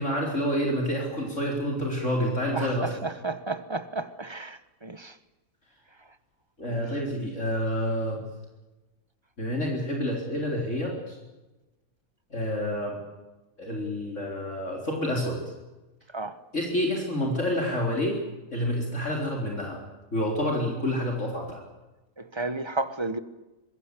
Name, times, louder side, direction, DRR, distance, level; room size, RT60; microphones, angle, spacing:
voice 1, 0.0-2.9 6.6-8.2 9.4-11.2 12.3-13.0 13.6-15.4 16.5-18.2 18.5-19.8 20.1-21.6, equal, 45° left, 4.4 m, -28 dB
voice 2, 2.5-5.2 6.7-7.0 16.1-16.4 22.2-23.2, right 3 dB, 20° right, 1.0 m, -33 dB
25.5 x 22.0 x 8.3 m
omnidirectional pair, 1.7 m